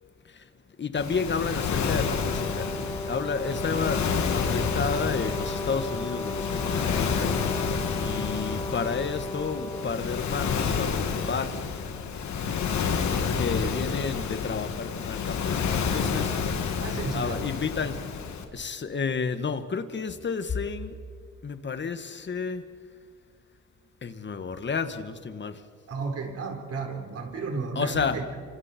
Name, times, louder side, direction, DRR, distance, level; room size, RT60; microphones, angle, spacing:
voice 1, 0.8-2.7 3.1-7.4 7.9-11.5 12.7-12.8 13.4-15.6 15.9-16.3 17.1-17.9 18.5-20.9 21.4-22.6 24.0-25.5 27.8-28.2, left 5 dB, 40° left, 10 dB, 1.8 m, -31 dB
Waves surf, 0.9-18.4, left 6 dB, 70° left, 2.5 m, -29 dB
Brass instrument, 1.8-10.5, equal, 15° left, 1.6 m, -36 dB
voice 2, 8.0-8.3 12.4-12.7 16.8-17.5 25.9-28.3, right 4 dB, 55° right, 3 dB, 4.4 m, -34 dB
29.0 x 25.5 x 4.6 m, 2.1 s
cardioid pair, 90°, 30 cm